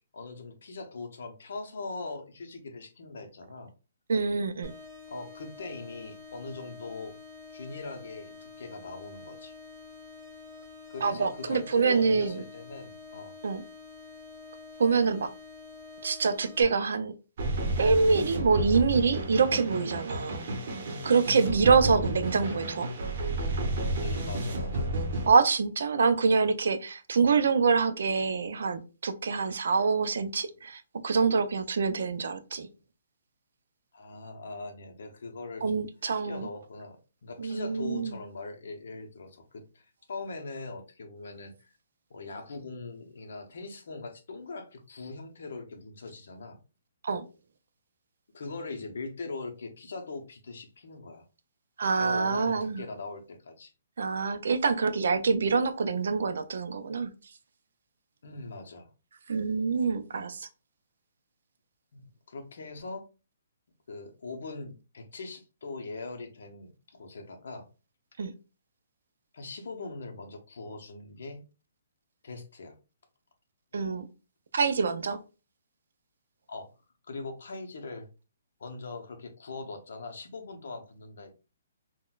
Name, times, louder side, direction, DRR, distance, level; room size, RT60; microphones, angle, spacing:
voice 1, 0.1-3.7 5.1-7.2 7.5-9.5 10.9-13.3 21.2-21.4 24.0-24.9 33.9-35.9 36.2-41.7 42.1-46.6 48.3-51.2 52.0-53.7 58.2-58.9 61.9-62.0 62.3-63.1 63.9-67.7 69.3-71.4 72.2-72.8 76.5-76.7 77.1-78.1 78.6-81.3, left 3 dB, 65° left, 0.7 m, -41 dB
voice 2, 4.1-4.7 11.0-12.4 13.4-13.6 14.8-15.3 16.0-17.1 17.8-20.4 21.0-22.9 25.3-32.7 35.6-36.5 37.4-38.2 47.0-47.2 51.8-52.8 54.0-57.1 59.3-60.5 68.2-68.3 73.7-74.1 74.5-75.2, right 5 dB, 70° right, 0.4 m, -26 dB
sound 1, 4.6-16.6, left 4 dB, 5° right, 0.6 m, -47 dB
sound 2, 17.4-25.3, right 1 dB, 40° right, 0.7 m, -31 dB
3.8 x 2.1 x 2.3 m
hypercardioid pair, 175°, 0 cm